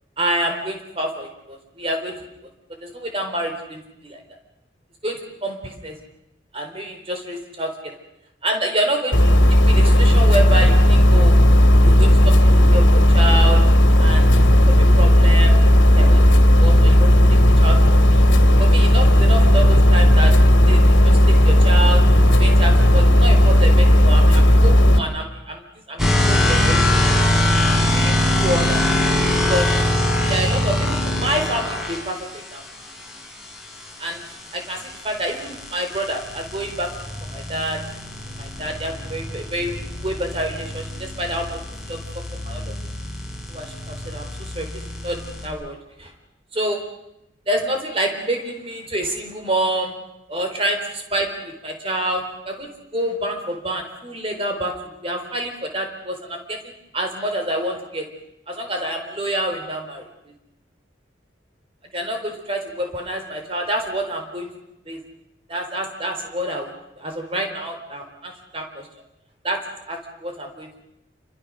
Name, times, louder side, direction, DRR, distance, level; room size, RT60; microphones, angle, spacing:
voice 1, 0.2-2.2 2.8-4.2 5.0-5.9 6.5-7.7 8.4-9.3 9.6-11.4 11.8-12.3 12.7-13.7 14.0-14.3 14.7-15.5 15.9-16.2 16.6-17.1 17.6-18.2 18.6-20.3 20.7-21.2 21.4-22.0 22.4-27.1 27.6-28.8 29.5-29.7 30.3-32.6 34.0-34.2 34.5-36.9 37.2-37.8 38.4-39.8 40.0-41.6 41.9-42.0 42.4-42.7 43.5-46.1 46.5-46.8 47.5-49.9 50.3-56.6 56.9-58.1 58.5-60.1 61.9-64.5 64.9-65.0 65.5-68.9 69.4-69.6 69.9-70.7, right 1 dB, 30° right, 4 dB, 4.3 m, -27 dB
sound 1, 9.1-25.0, equal, 80° left, 2.4 m, -13 dB
sound 2, 26.0-32.0 34.5-45.5, left 1 dB, ahead, 6.1 m, -23 dB
28.0 x 25.5 x 6.6 m, 0.84 s
head